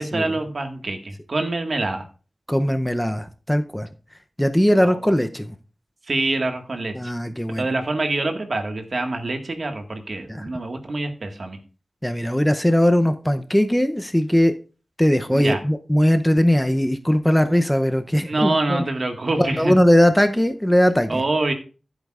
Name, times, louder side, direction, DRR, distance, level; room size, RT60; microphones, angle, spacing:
voice 1, 0.0-2.0 4.8-5.1 6.1-6.9 7.6-11.6 15.3-15.6 18.2-19.7 21.1-21.5, right 2 dB, 55° right, 5 dB, 1.7 m, -25 dB
voice 2, 2.5-3.9 4.4-5.5 6.9-7.6 10.3-10.5 12.0-14.5 15.0-18.8 19.4-21.2, equal, 5° left, 8 dB, 0.6 m, -19 dB
14.5 x 8.1 x 2.5 m, 0.36 s
wide cardioid pair, 85°, 0 cm